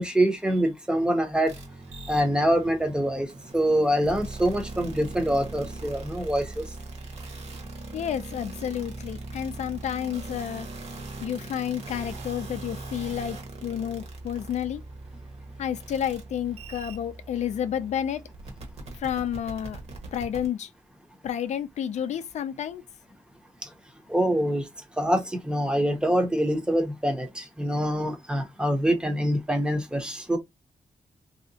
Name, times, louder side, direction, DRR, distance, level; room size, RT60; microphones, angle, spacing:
voice 1, 0.0-1.5 2.1-3.3 3.5-6.6 24.1-24.7 25.0-30.4, right 1 dB, 5° right, 0.6 m, -25 dB
sound 1, 1.5-20.5, right 2 dB, 60° right, 1.1 m, -40 dB
voice 2, 7.9-10.7 11.2-14.8 15.6-18.2 19.0-19.8 20.1-20.7 21.2-22.8, left 9 dB, 70° left, 0.4 m, -30 dB
3.2 x 2.7 x 2.6 m
wide cardioid pair, 170°, 12 cm